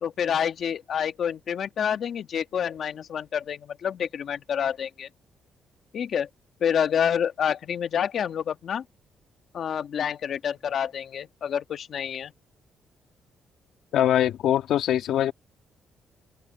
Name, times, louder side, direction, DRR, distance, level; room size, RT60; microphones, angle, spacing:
voice 1, 0.0-5.1 5.9-6.3 6.6-8.8 9.5-12.3, left 8 dB, 60° left, 1.5 m, -28 dB
voice 2, 13.9-15.3, left 11 dB, 80° left, 2.8 m, -22 dB
open air
cardioid pair, 90°, 0 cm